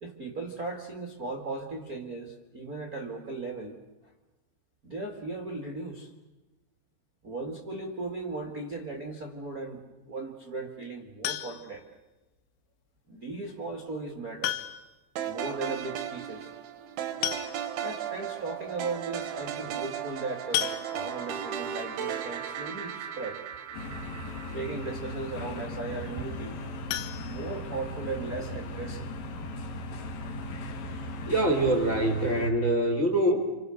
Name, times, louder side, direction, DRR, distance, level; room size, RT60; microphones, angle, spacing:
voice 1, 0.0-3.7 4.8-6.1 7.2-9.8 10.1-11.8 13.1-14.6 15.2-16.5 17.8-23.4 24.5-26.6 27.2-29.1, right 3 dB, 40° right, 1 dB, 1.2 m, -37 dB
sound 1, 11.2-11.9 13.4-13.5 14.4-15.0 15.3-15.4 15.7-15.8 16.8-16.9 17.2-17.9 18.5-18.6 18.9-19.1 20.5-21.4 26.9-28.1 28.4-28.5 29.0-29.1 29.4-29.5, left 12 dB, 75° left, 3.5 m, -34 dB
sound 2, 15.2-25.4, right 9 dB, 70° right, 2.6 m, -36 dB
sound 3, 23.7-32.5, left 2 dB, 55° left, 3.2 m, -38 dB
voice 2, 31.2-33.4, right 1 dB, 25° left, 4 dB, 1.7 m, -24 dB
28.5 x 28.5 x 6.6 m, 1.1 s
omnidirectional pair, 5.9 m